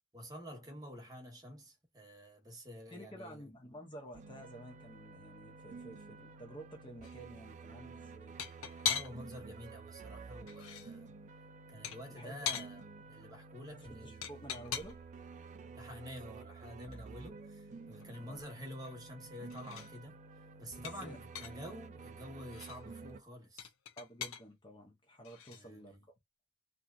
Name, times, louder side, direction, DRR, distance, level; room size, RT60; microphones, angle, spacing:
voice 1, 0.1-3.4 8.9-11.1 11.7-14.3 15.7-20.2 20.6-23.7 25.5-26.0, equal, 20° right, 1.0 m, -49 dB
voice 2, 2.9-8.4 12.1-12.6 13.7-15.0 18.1-18.4 21.0-21.2 24.0-26.0, right 1 dB, 25° left, 0.6 m, -51 dB
sound 1, 4.1-23.2, right 4 dB, 35° right, 0.3 m, -51 dB
sound 2, 7.0-7.2 8.4-9.4 10.3-10.9 11.8-12.7 14.2-15.1 16.9-17.0 17.4-17.5 17.8-19.2 19.5-19.9 20.8-21.7 22.4-22.8 23.6-24.4 25.2-25.6, left 7 dB, 70° left, 0.5 m, -40 dB
2.8 x 2.2 x 2.3 m
head